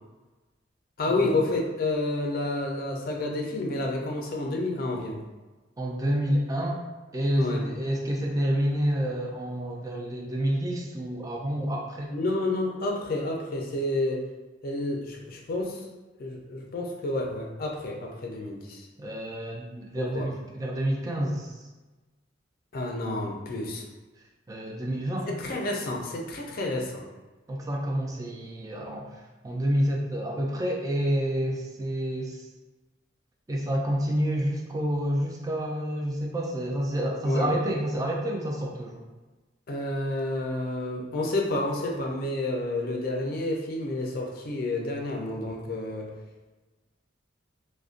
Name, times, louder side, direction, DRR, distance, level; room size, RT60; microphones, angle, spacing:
voice 1, 1.0-5.2 7.4-7.7 12.1-14.3 14.6-15.9 16.2-18.9 20.0-20.3 22.7-23.8 25.3-27.0 37.2-37.5 39.7-46.1, left 2 dB, 50° left, 0 dB, 0.4 m, -30 dB
voice 2, 5.8-6.8 7.1-12.2 19.0-21.5 24.5-25.3 27.5-32.5 33.5-39.0, equal, 20° right, -1 dB, 0.3 m, -28 dB
2.5 x 2.1 x 2.4 m, 1.2 s
head